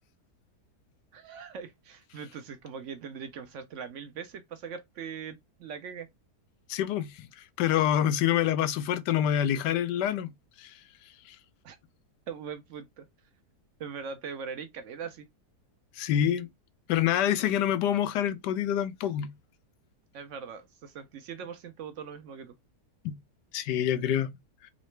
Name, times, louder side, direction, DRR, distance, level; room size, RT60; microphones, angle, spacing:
voice 1, 1.1-6.1 11.6-11.8 12.3-13.1 13.8-15.3 20.1-22.5, right 6 dB, 65° right, 0.8 m, -41 dB
voice 2, 6.7-7.3 7.6-10.3 10.6-10.7 16.0-16.5 16.9-19.3 23.0-23.1 23.5-24.3, left 10 dB, 85° left, 1.2 m, -26 dB
3.8 x 3.1 x 3.2 m
omnidirectional pair, 1.8 m